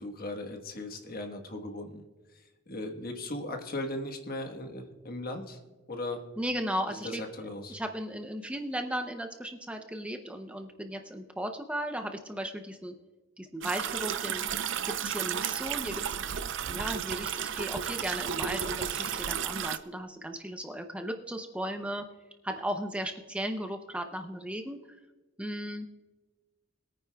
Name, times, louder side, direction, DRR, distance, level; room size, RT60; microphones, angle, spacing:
voice 1, 0.0-2.0 2.7-5.6 5.9-6.2 6.9-7.8, left 1 dB, 45° left, 4 dB, 1.3 m, -37 dB
voice 2, 6.4-7.2 7.7-12.9 13.4-14.4 14.8-16.0 16.6-22.0 22.4-24.8 25.4-25.9, equal, 5° right, 5 dB, 0.6 m, -36 dB
sound 1, 13.6-19.8, right 8 dB, 65° right, 0.5 m, -33 dB
22.0 x 9.4 x 2.3 m, 1.2 s
head